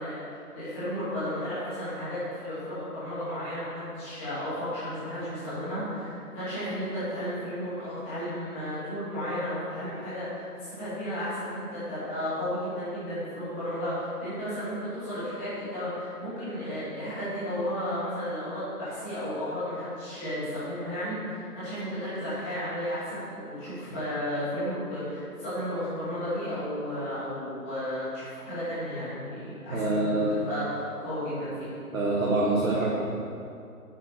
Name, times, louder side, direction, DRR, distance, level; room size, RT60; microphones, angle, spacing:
voice 1, 0.0-31.7, equal, 10° left, -13 dB, 2.1 m, -33 dB
voice 2, 29.7-30.4 31.9-33.0, right 2 dB, 60° right, -3 dB, 1.6 m, -25 dB
9.2 x 8.6 x 4.6 m, 2.5 s
figure-of-eight pair, 160°, 47 cm